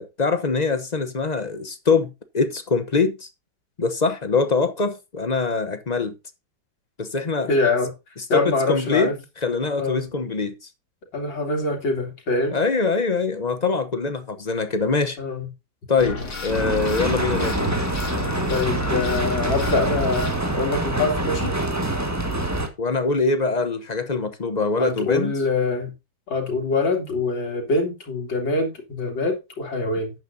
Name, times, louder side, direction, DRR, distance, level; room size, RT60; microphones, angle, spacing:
voice 1, 0.0-3.3 3.8-6.1 7.0-7.5 8.3-9.1 9.4-10.5 12.5-15.2 15.9-17.6 22.8-25.3, left 4 dB, 40° left, 0.6 m, -23 dB
voice 2, 7.5-7.9 8.3-9.2 9.8-10.0 11.1-12.6 15.2-15.5 18.5-21.5 24.8-25.9 26.3-30.1, left 3 dB, 90° left, 3.6 m, -24 dB
sound 1, 16.0-20.4, left 3 dB, 55° left, 3.3 m, -32 dB
sound 2, 16.5-22.7, right 1 dB, 10° right, 1.4 m, -25 dB
12.0 x 9.1 x 2.7 m
omnidirectional pair, 2.0 m